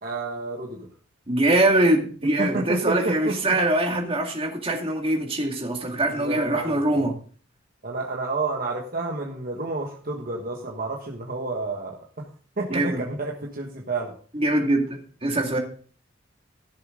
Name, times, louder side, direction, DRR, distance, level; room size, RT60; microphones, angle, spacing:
voice 1, 0.0-0.9 2.4-3.6 3.9-4.0 6.1-7.1 7.8-12.3 12.6-14.1, right 3 dB, 50° right, -1 dB, 1.4 m, -30 dB
voice 2, 1.3-7.1 12.7-13.0 14.3-15.6, right 1 dB, 30° right, 2 dB, 2.1 m, -23 dB
15.0 x 6.9 x 3.8 m, 0.42 s
head